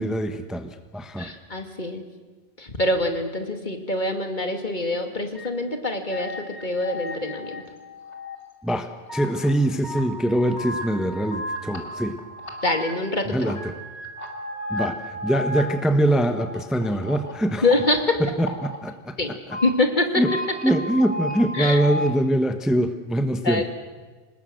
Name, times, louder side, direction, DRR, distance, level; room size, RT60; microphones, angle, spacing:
voice 1, 0.0-1.3 8.6-12.2 13.3-13.7 14.7-17.6 18.2-19.2 20.2-20.3 20.6-23.6, right 1 dB, ahead, 8 dB, 1.0 m, -23 dB
voice 2, 1.2-2.0 2.6-7.6 12.6-13.4 17.6-18.2 19.2-19.3 19.6-20.2 21.5-21.8 23.4-23.6, left 2 dB, 45° left, 6 dB, 2.5 m, -25 dB
sound 1, 5.3-5.5 6.1-8.4 8.7-9.5 9.8-13.1 13.4-18.8 19.3-19.7 20.1-22.1, left 1 dB, 80° left, 3.2 m, -34 dB
26.5 x 19.5 x 7.8 m, 1.3 s
omnidirectional pair, 1.1 m